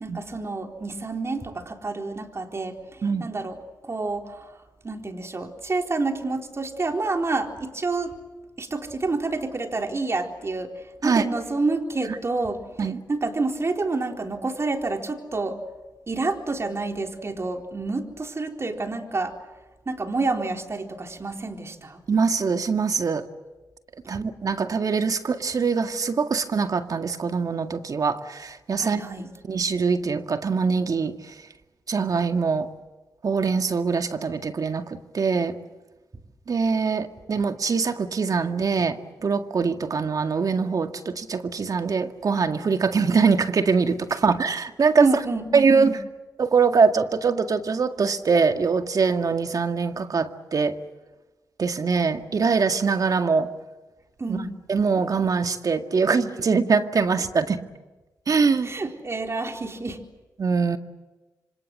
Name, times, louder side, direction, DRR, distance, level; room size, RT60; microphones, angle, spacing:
voice 1, 0.0-4.5 4.8-8.1 8.6-15.6 16.1-19.4 19.9-22.0 24.1-24.2 28.8-29.3 45.0-46.0 54.2-54.5 58.6-60.0, right 3 dB, 40° right, 4 dB, 4.0 m, -28 dB
voice 2, 22.1-23.3 24.1-29.0 29.5-31.1 31.9-32.7 33.2-35.6 36.5-45.1 45.5-46.0 46.4-50.8 51.6-53.5 54.3-54.4 54.7-57.6 58.3-58.7 60.4-60.8, right 5 dB, 55° right, 7 dB, 2.0 m, -23 dB
27.0 x 26.0 x 7.8 m, 1.1 s
supercardioid pair, 50°, 7 cm